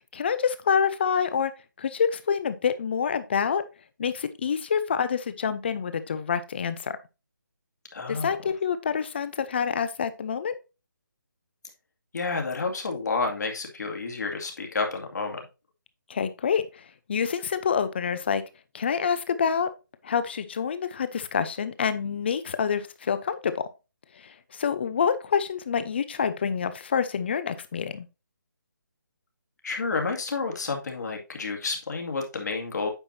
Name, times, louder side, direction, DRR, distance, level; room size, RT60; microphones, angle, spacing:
voice 1, 0.1-1.5 1.8-3.6 4.0-7.0 8.1-10.5 16.1-16.6 17.1-18.4 18.7-19.7 20.0-23.6 24.5-28.1, left 7 dB, 30° left, 13 dB, 0.7 m, -27 dB
voice 2, 7.9-8.5 12.1-15.4 29.6-32.9, left 4 dB, 55° left, 2 dB, 2.3 m, -30 dB
9.0 x 6.1 x 2.7 m, 0.28 s
hypercardioid pair, 165°, 11 cm